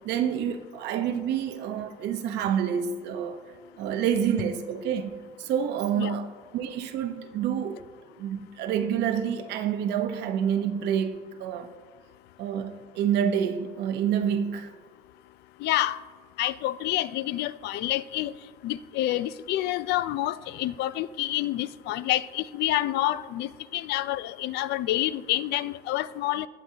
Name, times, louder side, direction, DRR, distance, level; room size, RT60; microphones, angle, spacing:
voice 1, 0.0-3.4 3.8-5.1 5.4-7.8 8.2-11.7 12.4-14.7, right 8 dB, 85° right, 0.9 m, -28 dB
voice 2, 15.6-16.0 16.4-18.3 18.6-26.5, left 14 dB, 80° left, 0.4 m, -28 dB
19.5 x 7.5 x 2.8 m
cardioid pair, 110°, 17 cm